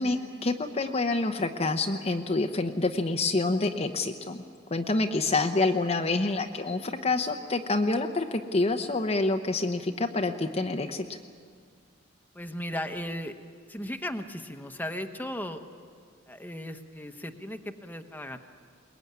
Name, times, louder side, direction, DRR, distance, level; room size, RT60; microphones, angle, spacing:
voice 1, 0.0-4.4 4.7-11.1, left 3 dB, 30° left, 5 dB, 0.9 m, -27 dB
voice 2, 12.3-13.4 13.7-15.6 16.3-18.4, left 1 dB, 10° left, 6 dB, 1.1 m, -36 dB
22.5 x 20.5 x 9.5 m, 2.1 s
head